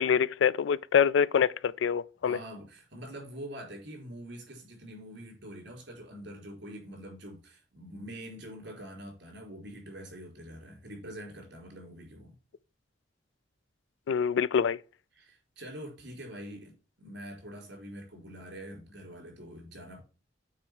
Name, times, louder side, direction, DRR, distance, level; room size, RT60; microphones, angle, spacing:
voice 1, 0.0-2.4 14.1-14.8, left 7 dB, 80° left, 0.3 m, -25 dB
voice 2, 2.2-12.3 15.2-20.0, equal, 65° right, 4.5 m, -45 dB
8.7 x 4.3 x 4.7 m
head